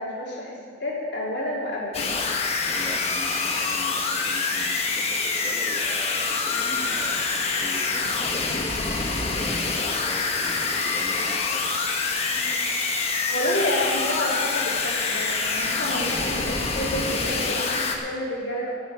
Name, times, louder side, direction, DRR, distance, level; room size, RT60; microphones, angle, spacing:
voice 1, 0.0-2.1 12.3-12.6 13.1-18.7, left 1 dB, 60° left, -4 dB, 3.3 m, -30 dB
sound 1, 1.9-18.0, left 4 dB, 35° left, 1.2 m, -26 dB
voice 2, 2.7-7.1 7.6-11.7, equal, 15° left, -5 dB, 1.4 m, -40 dB
14.0 x 8.4 x 6.2 m, 2.2 s
head